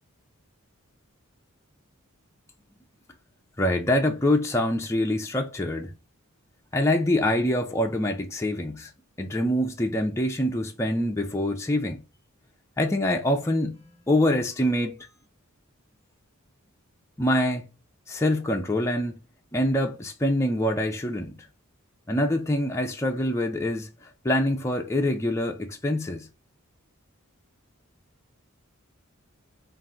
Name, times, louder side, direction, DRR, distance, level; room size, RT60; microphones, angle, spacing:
voice 1, 3.6-5.9 6.7-8.9 9.2-12.0 12.8-15.1 17.2-17.7 18.1-19.1 19.5-21.4 22.1-26.3, left 1 dB, 15° left, 0.5 m, -25 dB
4.3 x 2.5 x 3.6 m
head